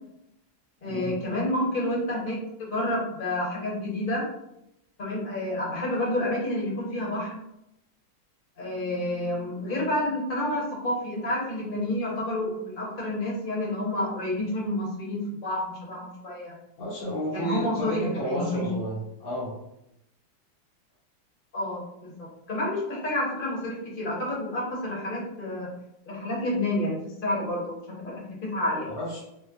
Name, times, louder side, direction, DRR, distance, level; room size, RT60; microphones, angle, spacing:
voice 1, 0.8-4.2 5.0-7.4 8.6-16.5 17.3-18.7 21.5-25.7 26.1-28.9, left 1 dB, 40° left, -4 dB, 0.7 m, -29 dB
voice 2, 16.8-19.5 28.9-29.2, equal, 85° left, -8 dB, 2.0 m, -31 dB
5.3 x 2.1 x 2.5 m, 0.83 s
omnidirectional pair, 2.2 m